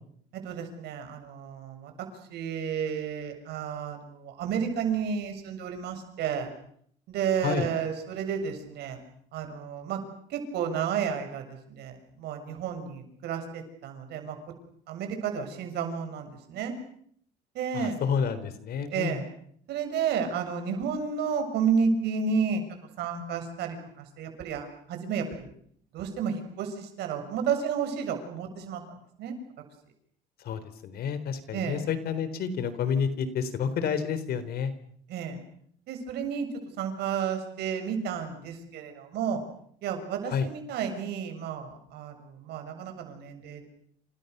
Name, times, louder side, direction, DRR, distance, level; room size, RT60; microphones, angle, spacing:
voice 1, 0.3-6.5 7.1-9.0 9.3-10.0 10.3-14.4 14.9-16.7 17.5-18.0 18.9-19.2 19.7-22.6 23.0-25.5 25.9-28.8 29.2-29.4 31.5-31.8 35.1-35.4 35.9-36.5 36.8-39.4 39.8-43.7, right 6 dB, 80° right, 6 dB, 7.2 m, -31 dB
voice 2, 17.7-19.2 30.4-34.7 40.3-40.5, left 7 dB, 65° left, 13 dB, 3.9 m, -29 dB
28.5 x 28.0 x 6.8 m, 0.66 s
cardioid pair, 110°, 17 cm